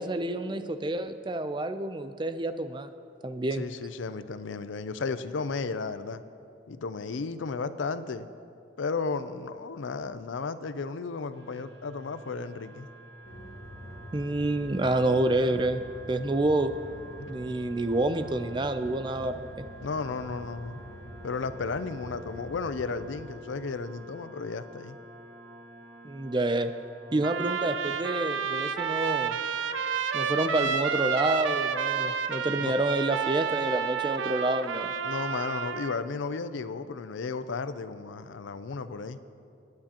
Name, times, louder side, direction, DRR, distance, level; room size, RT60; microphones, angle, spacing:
voice 1, 0.0-2.9 3.2-3.6 14.1-15.8 16.1-16.7 17.3-19.7 26.0-26.7 27.1-29.4 30.1-34.9, right 2 dB, 25° right, 10 dB, 0.4 m, -28 dB
voice 2, 3.5-6.2 6.7-8.3 8.8-12.9 17.2-17.3 19.8-20.8 21.2-25.0 32.6-32.7 35.0-39.2, left 4 dB, 85° left, 12 dB, 0.5 m, -34 dB
sound 1, 11.3-27.5, right 1 dB, 65° right, 1.6 m, -49 dB
sound 2, 13.2-23.2, equal, 55° left, 1.5 m, -46 dB
Trumpet, 27.2-36.0, right 6 dB, 85° right, 0.6 m, -30 dB
21.0 x 9.6 x 2.9 m, 2.6 s
head